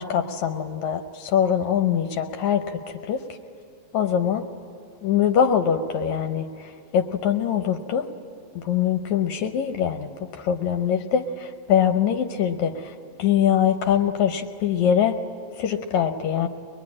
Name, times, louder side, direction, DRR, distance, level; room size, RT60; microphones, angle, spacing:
voice 1, 0.0-3.2 3.9-4.5 5.0-8.1 8.6-15.2 15.6-16.5, left 8 dB, 75° left, 6 dB, 2.1 m, -23 dB
23.5 x 21.0 x 9.7 m, 2.3 s
omnidirectional pair, 3.4 m